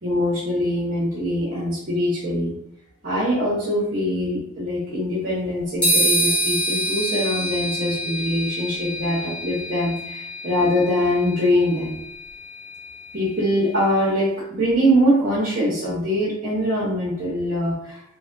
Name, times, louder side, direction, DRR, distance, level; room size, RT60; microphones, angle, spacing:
voice 1, 0.0-2.5 3.0-11.9 13.1-18.0, equal, 45° right, -7 dB, 0.8 m, -23 dB
sound 1, 5.8-13.5, equal, 5° left, 1.0 m, -26 dB
3.3 x 2.1 x 2.6 m, 0.77 s
head